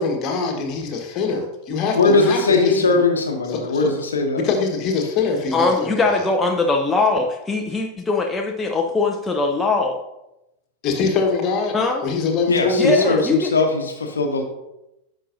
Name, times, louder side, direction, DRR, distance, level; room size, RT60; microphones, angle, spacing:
voice 1, 0.0-3.0 3.5-3.9 4.3-6.2 10.8-13.2, left 4 dB, 35° left, 3 dB, 1.3 m, -23 dB
voice 2, 1.9-4.4 12.5-14.4, left 3 dB, 70° left, 4 dB, 0.9 m, -20 dB
voice 3, 5.5-10.0 11.7-12.0 12.8-13.5, left 3 dB, 10° left, 2 dB, 0.6 m, -21 dB
9.9 x 6.0 x 2.7 m, 0.91 s
figure-of-eight pair, 90°, 0 cm